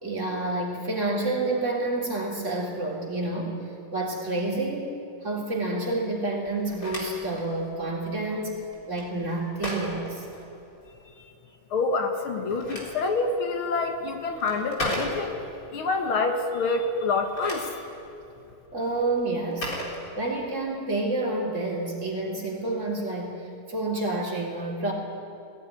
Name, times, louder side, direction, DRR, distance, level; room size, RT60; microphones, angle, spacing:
voice 1, 0.0-8.6 8.9-10.2 18.7-19.7 20.2-23.4 23.7-24.9, right 2 dB, 35° right, -3 dB, 3.9 m, -29 dB
Telephone, 6.5-11.0 12.2-15.6 17.1-20.7, equal, 40° left, 4.3 m, -37 dB
voice 2, 11.7-15.4 15.7-17.8, left 3 dB, 70° left, 5 dB, 2.4 m, -27 dB
18.0 x 17.5 x 9.9 m, 2.8 s
omnidirectional pair, 2.4 m